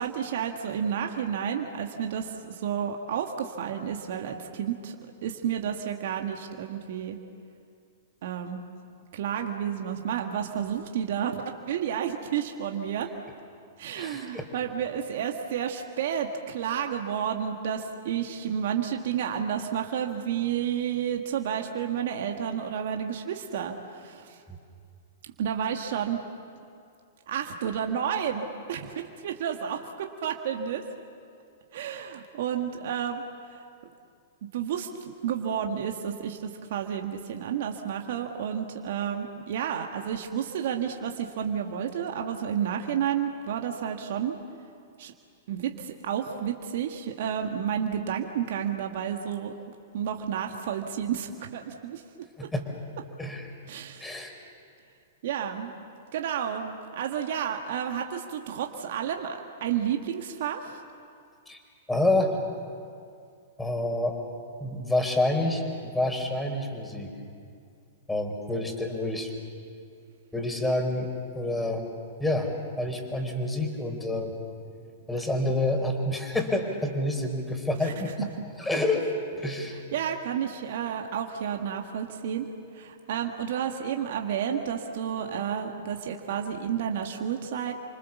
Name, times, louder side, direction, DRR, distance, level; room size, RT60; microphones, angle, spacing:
voice 1, 0.0-5.0 5.2-7.2 8.2-8.6 9.1-11.3 11.6-13.1 13.8-24.4 25.2-26.2 27.3-29.8 30.2-30.8 31.7-33.2 33.5-33.6 34.5-44.4 45.0-45.1 45.5-49.5 49.9-52.0 53.7-54.1 55.2-55.7 56.1-60.8 77.8-77.9 78.2-78.3 79.9-82.5 82.7-87.7, right 8 dB, 60° right, 3 dB, 1.8 m, -31 dB
voice 2, 14.0-14.5 24.5-24.6 52.4-52.6 53.2-53.5 54.0-54.3 61.5-61.6 61.9-62.4 63.6-64.2 64.6-67.1 68.1-69.3 70.3-71.9 72.2-72.5 72.8-74.3 75.1-78.3 78.6-79.1 79.3-79.8, left 1 dB, 5° left, 3 dB, 4.3 m, -28 dB
29.0 x 25.0 x 7.2 m, 2.4 s
hypercardioid pair, 110°, 0 cm